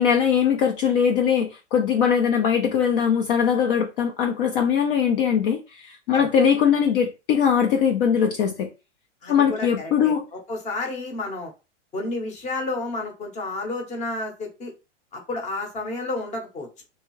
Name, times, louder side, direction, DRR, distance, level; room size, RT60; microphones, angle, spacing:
voice 1, 0.0-8.7 9.3-10.3, left 7 dB, 50° left, 0.5 m, -21 dB
voice 2, 9.2-11.5 11.9-14.7 15.1-16.7, left 2 dB, 20° left, 0.8 m, -31 dB
2.7 x 2.3 x 3.0 m
hypercardioid pair, 130°, 36 cm